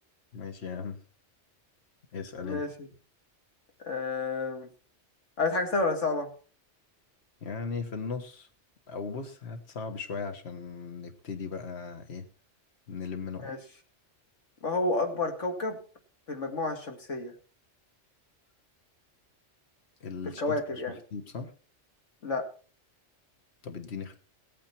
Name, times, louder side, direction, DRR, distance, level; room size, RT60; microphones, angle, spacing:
voice 1, 0.3-1.0 2.1-2.6 7.4-8.5 8.9-12.3 12.9-13.5 20.0-20.6 21.1-21.5 23.6-24.2, left 5 dB, 60° left, 7 dB, 1.7 m, -37 dB
voice 2, 2.4-2.9 3.8-4.7 5.4-6.3 13.4-13.6 14.6-15.8 16.3-17.3 20.4-21.0 22.2-22.5, left 3 dB, 85° left, 3 dB, 2.5 m, -30 dB
17.0 x 9.0 x 4.5 m, 0.38 s
omnidirectional pair, 1.2 m